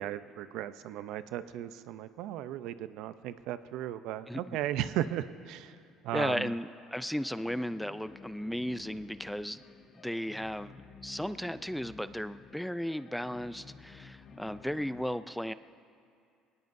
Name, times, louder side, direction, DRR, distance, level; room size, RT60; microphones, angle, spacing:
voice 1, 0.0-5.8 6.0-6.5, right 12 dB, 75° right, 13 dB, 0.5 m, -36 dB
voice 2, 4.3-4.6 6.1-9.6 10.0-15.5, equal, ahead, 13 dB, 0.3 m, -35 dB
sound 1, 7.2-15.0, left 5 dB, 40° left, 1.1 m, -53 dB
22.0 x 19.0 x 2.6 m, 2.4 s
cardioid pair, 110°, 0 cm